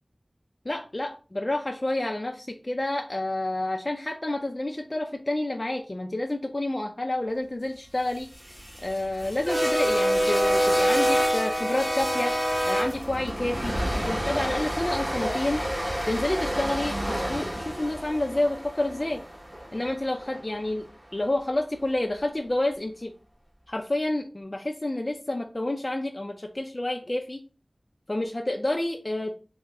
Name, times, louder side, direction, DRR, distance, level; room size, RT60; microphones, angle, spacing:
voice 1, 0.6-8.3 8.8-12.4 12.6-15.6 16.1-19.2 19.7-23.1 23.7-27.4 28.1-29.3, left 1 dB, 40° left, 3 dB, 0.4 m, -29 dB
sound 1, 8.2-20.4, equal, 25° right, 1.2 m, -27 dB
3.6 x 2.1 x 3.4 m, 0.35 s
wide cardioid pair, 45°, 0 cm